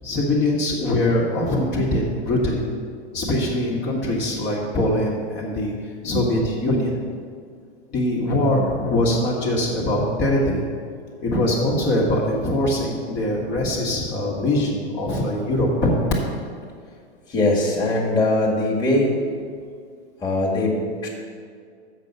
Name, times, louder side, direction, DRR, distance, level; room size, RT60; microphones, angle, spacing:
voice 1, 0.0-2.7 3.1-5.7 6.0-7.0 7.9-10.6 11.2-16.0, left 1 dB, 35° left, -3 dB, 1.6 m, -22 dB
voice 2, 17.3-19.1 20.2-21.1, left 2 dB, 10° left, -5 dB, 1.7 m, -21 dB
7.4 x 5.5 x 6.7 m, 2.1 s
hypercardioid pair, 120°, 33 cm